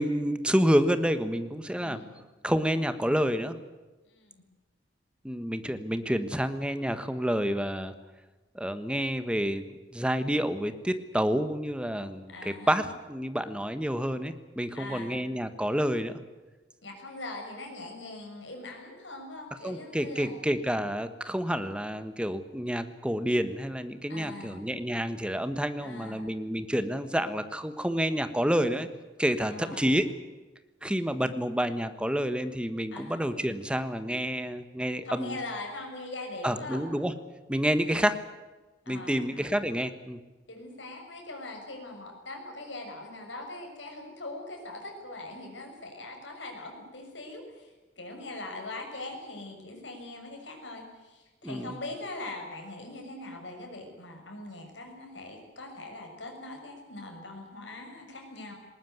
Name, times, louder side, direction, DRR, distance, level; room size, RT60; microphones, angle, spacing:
voice 1, 0.0-2.0 2.4-3.6 5.2-7.9 8.5-16.2 19.6-28.9 29.2-30.1 30.8-35.4 36.4-37.1 37.5-38.2 38.9-40.2 51.4-51.7, equal, 5° right, 10 dB, 1.3 m, -29 dB
voice 2, 1.8-2.1 4.1-4.4 12.3-12.8 14.7-15.1 16.8-20.4 24.1-24.6 25.8-26.2 29.4-29.9 32.9-33.2 35.0-36.8 37.8-38.1 38.8-39.5 40.5-58.5, left 2 dB, 85° left, 3 dB, 6.6 m, -41 dB
20.0 x 19.0 x 9.4 m, 1.2 s
head